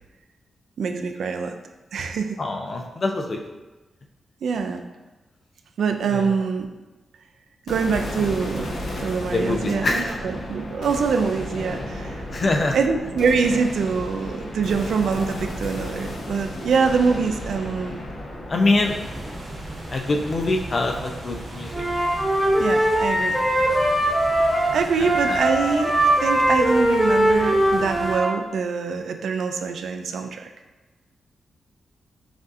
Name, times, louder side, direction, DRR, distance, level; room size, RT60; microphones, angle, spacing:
voice 1, 0.8-1.6 1.9-2.4 4.4-4.8 5.8-6.7 7.7-8.7 9.0-12.2 12.7-18.0 22.6-23.4 24.7-30.5, right 5 dB, 80° right, 6 dB, 0.3 m, -24 dB
voice 2, 2.4-3.4 6.1-6.3 9.3-10.2 12.3-12.8 18.5-19.0 19.9-21.8 25.0-25.4, left 2 dB, 45° left, 2 dB, 0.5 m, -24 dB
sound 1, 7.7-22.0, left 1 dB, 85° left, 0.9 m, -34 dB
sound 2, 18.8-28.1, right 1 dB, 60° right, 1.4 m, -37 dB
Wind instrument woodwind instrument, 21.7-28.3, right 1 dB, 15° right, 1.0 m, -21 dB
6.0 x 2.7 x 2.5 m, 1.2 s
wide cardioid pair, 115°, 0 cm